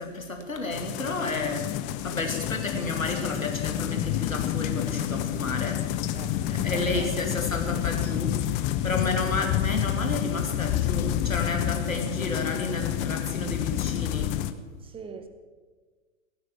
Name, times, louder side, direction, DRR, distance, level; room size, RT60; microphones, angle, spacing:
voice 1, 0.0-6.0 6.5-14.3, left 2 dB, 80° left, 3 dB, 2.3 m, -31 dB
sound 1, 0.7-14.5, left 12 dB, 20° left, 0.5 m, -29 dB
voice 2, 6.1-7.1 9.1-9.5 14.8-15.3, right 5 dB, 15° right, 9 dB, 1.1 m, -43 dB
17.5 x 9.5 x 7.0 m, 1.4 s
figure-of-eight pair, 105°, 40 cm